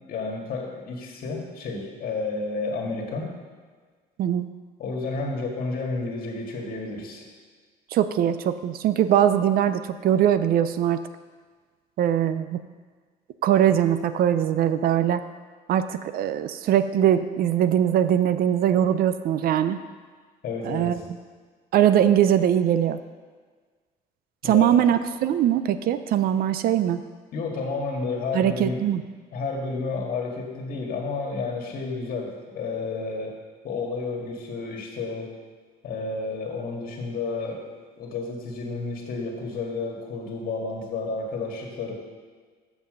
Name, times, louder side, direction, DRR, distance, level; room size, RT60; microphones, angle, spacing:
voice 1, 0.1-3.3 4.8-7.2 20.4-21.0 24.4-24.8 27.3-28.9 29.3-33.4 33.6-35.3 35.8-37.6 38.0-41.9, left 3 dB, 60° left, 0 dB, 1.8 m, -31 dB
voice 2, 7.9-11.0 12.0-12.6 13.4-15.2 15.7-19.8 20.6-20.9 21.7-23.0 24.4-27.0 28.3-29.0, right 10 dB, 60° right, 12 dB, 0.5 m, -21 dB
7.2 x 5.7 x 6.4 m, 1.5 s
cardioid pair, 110°, 17 cm